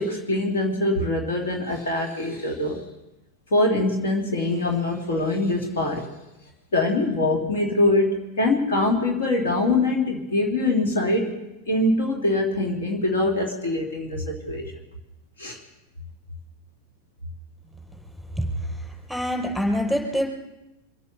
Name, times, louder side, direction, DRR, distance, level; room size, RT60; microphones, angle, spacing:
voice 1, 0.0-2.8 3.5-6.1 6.7-11.4 11.7-14.7 15.4-15.6, left 2 dB, 60° left, 1 dB, 2.7 m, -23 dB
voice 2, 18.3-20.3, equal, ahead, 1 dB, 5.0 m, -26 dB
25.0 x 8.4 x 6.9 m, 0.98 s
figure-of-eight pair, 90°, 0 cm